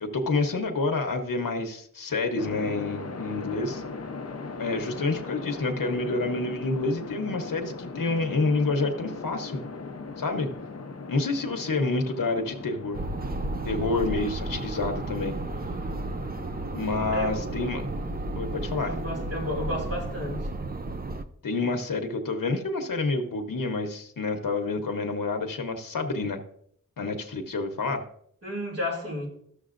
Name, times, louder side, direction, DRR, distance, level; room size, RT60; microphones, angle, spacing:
voice 1, 0.0-3.8 4.6-9.6 10.2-10.5 11.1-13.0 13.6-15.3 16.7-17.9 18.3-18.9 21.4-26.4 27.0-28.0, left 3 dB, 80° left, 5 dB, 0.9 m, -28 dB
sound 1, 2.4-20.4, left 3 dB, 50° left, 0.7 m, -40 dB
sound 2, 12.9-21.2, right 2 dB, 30° right, 0.5 m, -33 dB
voice 2, 17.1-17.5 18.9-20.4 28.4-29.3, left 1 dB, 45° right, -1 dB, 2.6 m, -32 dB
13.5 x 6.6 x 2.5 m, 0.67 s
wide cardioid pair, 65°, 33 cm